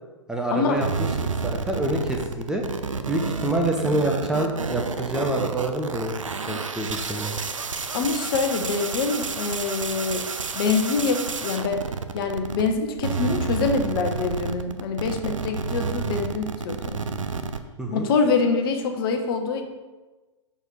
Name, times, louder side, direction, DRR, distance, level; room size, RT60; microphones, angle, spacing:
voice 1, 0.3-1.1 1.4-2.6 3.1-6.1 6.5-7.4 17.8-18.1, right 1 dB, 5° right, 1 dB, 0.5 m, -26 dB
sound 1, 0.8-12.7 13.0-17.6, right 5 dB, 80° right, 0.5 m, -30 dB
voice 2, 7.9-10.2 10.5-11.8 12.1-17.0 17.9-19.6, left 4 dB, 45° left, 5 dB, 0.9 m, -25 dB
6.6 x 4.5 x 4.7 m, 1.2 s
figure-of-eight pair, 110°, 16 cm